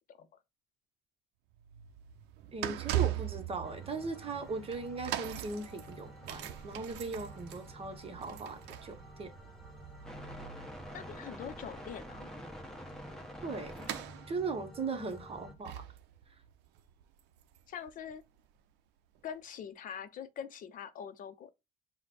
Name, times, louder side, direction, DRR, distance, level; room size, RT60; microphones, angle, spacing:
sound 1, 1.5-18.5 19.2-19.3, right 14 dB, 90° right, 0.5 m, -41 dB
voice 1, 2.5-9.3 13.4-13.9 14.3-15.9, right 4 dB, 35° right, 0.8 m, -38 dB
sound 2, 3.6-15.5, equal, 5° left, 0.8 m, -49 dB
voice 2, 10.9-12.3 17.7-18.2 19.2-21.5, left 8 dB, 55° left, 0.5 m, -43 dB
4.9 x 2.1 x 4.1 m
cardioid pair, 110°, 17 cm